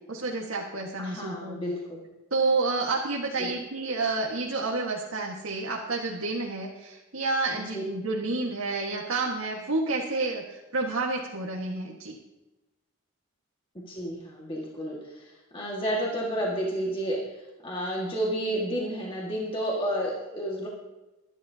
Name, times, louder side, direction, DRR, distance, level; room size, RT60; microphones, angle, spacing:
voice 1, 0.1-1.7 2.3-12.2, right 3 dB, 70° right, -1 dB, 1.6 m, -29 dB
voice 2, 1.0-2.0 3.4-3.6 7.7-7.8 13.9-20.7, equal, 25° left, -3 dB, 1.8 m, -31 dB
23.5 x 11.0 x 2.8 m, 1.1 s
head